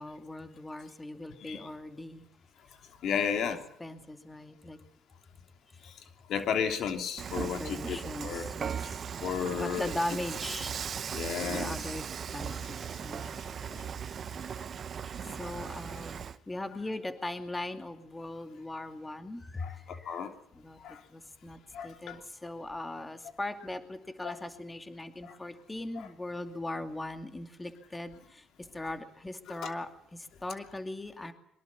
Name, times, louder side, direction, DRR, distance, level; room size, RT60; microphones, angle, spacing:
voice 1, 0.0-2.2 3.5-4.8 5.7-5.8 7.4-9.0 9.5-10.7 11.4-12.0 12.3-13.3 15.3-20.2 20.5-20.8 21.1-28.4 28.7-31.3, left 2 dB, 15° left, 8 dB, 2.4 m, -39 dB
voice 2, 3.0-3.6 5.8-5.9 6.3-8.5 9.2-9.9 11.1-11.7 13.2-13.9 15.3-15.4 19.6-20.3 20.8-21.0 21.7-22.2 24.2-24.4 25.2-25.4 26.0-26.1 29.5-29.7, left 7 dB, 70° left, 6 dB, 3.0 m, -34 dB
Dishes pots and pans / Frying (food), 7.2-16.4, right 7 dB, 50° right, 0.9 m, -38 dB
23.5 x 21.5 x 7.1 m, 0.78 s
cardioid pair, 90°, 0 cm